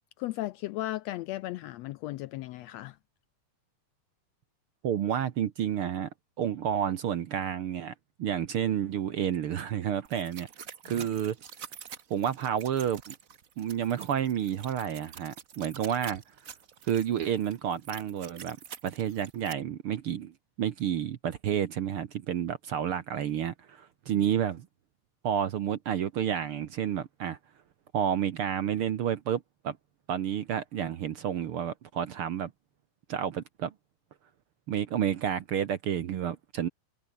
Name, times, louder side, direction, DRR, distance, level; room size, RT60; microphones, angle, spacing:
voice 1, 0.2-3.0 10.9-11.1 24.1-24.2, left 17 dB, 80° left, 1.5 m, -36 dB
voice 2, 4.8-6.1 6.4-7.9 8.2-10.5 10.8-11.4 12.1-13.1 13.6-16.3 16.8-18.6 18.8-24.7 25.2-27.4 27.9-29.8 30.1-32.5 33.1-33.7 34.7-36.7, right 9 dB, 60° right, 1.6 m, -30 dB
sound 1, 10.0-19.5, right 7 dB, 80° right, 0.7 m, -47 dB
omnidirectional pair, 3.4 m